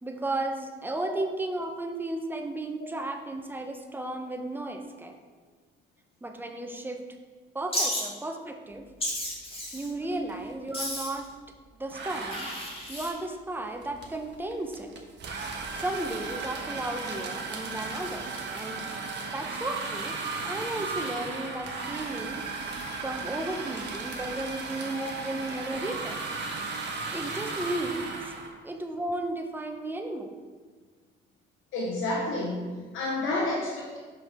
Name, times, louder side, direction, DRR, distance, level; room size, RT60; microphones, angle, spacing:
voice 1, 0.0-5.1 6.2-7.0 7.5-8.9 9.7-11.3 11.8-12.5 12.9-14.9 15.7-18.8 19.3-20.2 20.4-22.5 23.0-26.2 27.1-28.1 28.6-30.3, right 2 dB, 10° right, 4 dB, 0.7 m, -34 dB
Wild animals, 7.7-8.0 9.0-9.9 10.7-11.2 12.3-13.1, equal, 30° left, 1.9 m, -32 dB
sound 1, 9.5-9.8 10.1-11.3 11.9-28.5, right 4 dB, 60° right, 1.0 m, -36 dB
voice 2, 31.7-34.0, left 2 dB, 90° left, -3 dB, 0.9 m, -30 dB
5.7 x 5.2 x 3.5 m, 1.4 s
cardioid pair, 90°, 20 cm